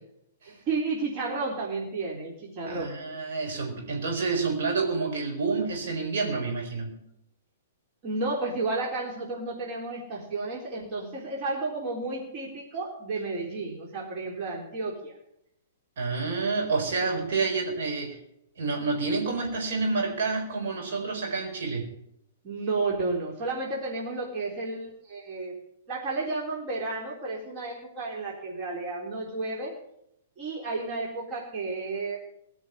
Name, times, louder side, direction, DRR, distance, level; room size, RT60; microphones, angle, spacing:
voice 1, 0.5-3.0 8.0-15.1 22.4-25.5 25.9-29.8 30.4-32.2, right 3 dB, 40° right, -2 dB, 3.8 m, -32 dB
voice 2, 2.7-7.1 16.0-18.2 18.6-21.9, right 4 dB, 60° right, 1 dB, 4.5 m, -29 dB
18.5 x 6.3 x 9.8 m, 0.77 s
figure-of-eight pair, 115°, 0 cm